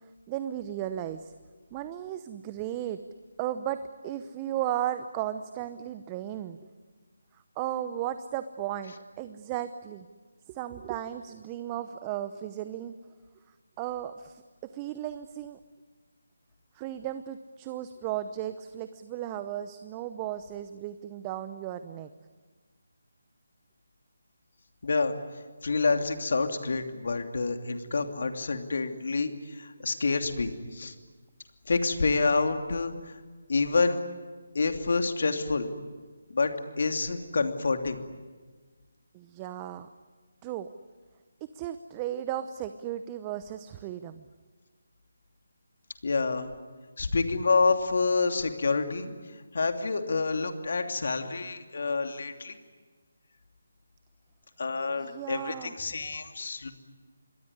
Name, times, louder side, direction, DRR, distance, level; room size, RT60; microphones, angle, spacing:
voice 1, 0.3-1.3 1.7-3.0 3.4-6.6 7.6-10.1 10.5-12.9 13.8-15.6 16.7-22.1 39.1-39.9 40.4-40.7 41.5-44.3 54.9-55.7, right 11 dB, 20° right, 11 dB, 0.8 m, -35 dB
voice 2, 24.8-25.1 25.6-30.9 31.7-32.9 33.5-34.0 34.5-35.7 36.3-36.5 36.8-38.0 46.0-46.5 47.0-49.1 49.5-52.6 54.6-56.7, left 4 dB, 60° left, 6 dB, 2.9 m, -28 dB
27.0 x 21.5 x 9.9 m, 1.4 s
figure-of-eight pair, 155°, 0 cm